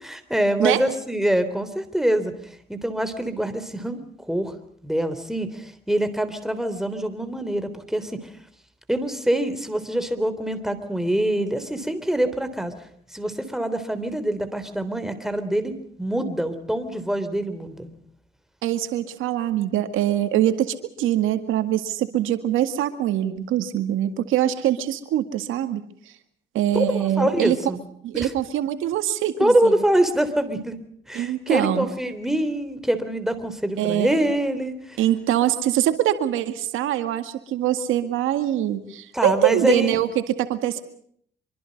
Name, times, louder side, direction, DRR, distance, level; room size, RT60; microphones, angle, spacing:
voice 1, 0.0-4.5 4.8-8.3 8.9-17.9 26.7-27.8 28.1-28.3 29.4-30.8 31.1-35.0 39.1-40.0, right 1 dB, ahead, 9 dB, 3.5 m, -25 dB
voice 2, 18.6-25.8 26.5-27.6 28.0-29.7 31.1-31.9 33.8-34.3 35.0-40.8, right 12 dB, 90° right, 9 dB, 2.0 m, -23 dB
25.5 x 24.0 x 5.3 m, 0.63 s
cardioid pair, 90°, 20 cm